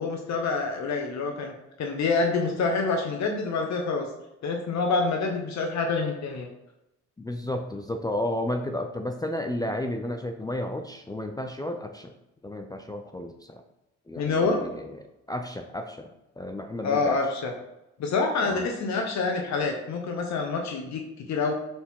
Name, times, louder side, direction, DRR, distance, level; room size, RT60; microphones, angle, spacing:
voice 1, 0.0-1.5 1.8-4.1 4.4-6.5 14.1-14.6 16.8-17.5 18.0-21.5, left 4 dB, 65° left, 2 dB, 1.0 m, -27 dB
voice 2, 7.2-12.1 12.4-13.6 14.1-15.0 15.3-17.2 18.4-18.7, left 1 dB, 15° left, 5 dB, 0.5 m, -32 dB
7.0 x 4.4 x 3.7 m, 0.91 s
cardioid pair, 90°, 30 cm